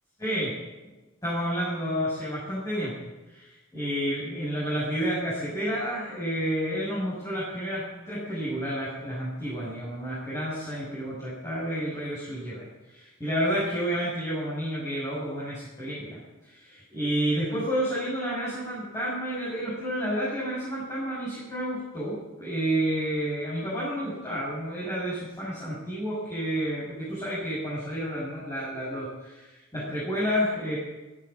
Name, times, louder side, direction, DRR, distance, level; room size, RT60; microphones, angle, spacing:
voice 1, 0.2-0.5 1.2-2.9 3.3-30.8, equal, 15° left, -10 dB, 6.8 m, -30 dB
14.5 x 11.5 x 8.5 m, 1.1 s
head